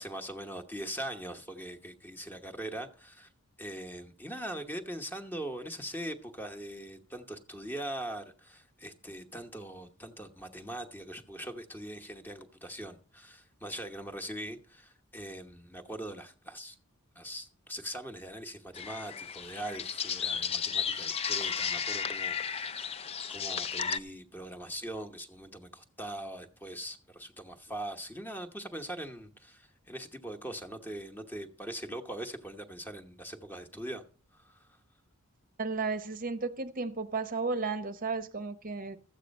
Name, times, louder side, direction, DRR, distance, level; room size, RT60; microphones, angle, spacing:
voice 1, 0.0-3.3 3.6-16.8 17.1-23.0 23.3-34.0 34.3-34.7, right 1 dB, 10° left, 1.0 m, -41 dB
sound 1, 18.7-24.0, left 7 dB, 30° left, 0.4 m, -34 dB
voice 2, 35.6-39.0, right 4 dB, 40° right, 0.8 m, -33 dB
13.5 x 8.2 x 5.2 m
head